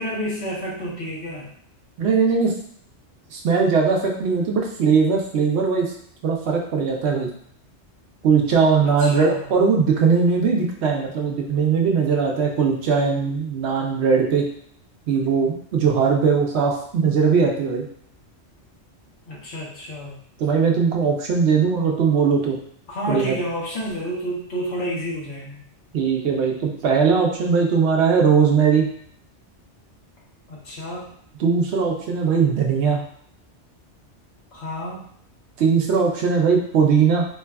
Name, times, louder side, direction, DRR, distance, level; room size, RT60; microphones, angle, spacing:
voice 1, 0.0-1.5 8.8-9.5 19.3-20.2 21.7-22.4 22.9-25.6 30.5-31.1 34.5-35.1, equal, 70° left, -4 dB, 1.1 m, -30 dB
voice 2, 2.0-2.5 3.3-5.9 6.2-7.3 8.2-14.4 15.1-17.9 20.4-22.6 23.1-23.4 25.9-28.9 31.4-33.0 35.6-37.3, right 5 dB, 70° right, 0 dB, 0.8 m, -19 dB
3.2 x 2.3 x 2.2 m, 0.64 s
omnidirectional pair, 1.2 m